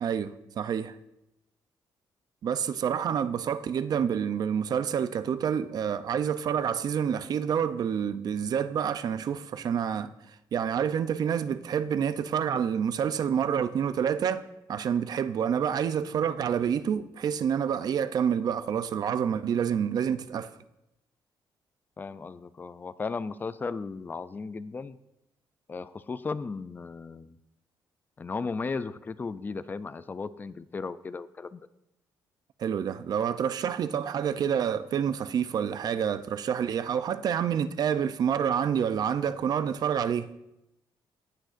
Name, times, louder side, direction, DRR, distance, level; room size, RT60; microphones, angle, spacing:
voice 1, 0.0-1.0 2.4-10.1 10.5-20.5 32.6-40.3, right 8 dB, 50° right, 0.4 m, -28 dB
voice 2, 22.0-25.0 25.7-27.4 28.2-31.6, left 4 dB, 20° left, 0.3 m, -35 dB
17.5 x 6.3 x 2.5 m
cardioid pair, 140°, 8 cm